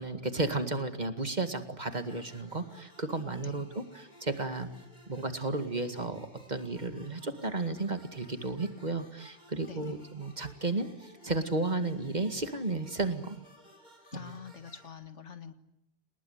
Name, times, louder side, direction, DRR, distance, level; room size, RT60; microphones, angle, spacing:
voice 1, 0.0-4.7 5.1-13.4 14.2-14.3, right 2 dB, 35° right, 8 dB, 2.2 m, -33 dB
sound 1, 1.9-14.9, left 1 dB, 40° left, 6.2 m, -57 dB
voice 2, 9.6-10.0 14.1-15.5, left 7 dB, 80° left, 10 dB, 2.0 m, -45 dB
29.0 x 20.0 x 9.5 m, 0.78 s
omnidirectional pair, 1.2 m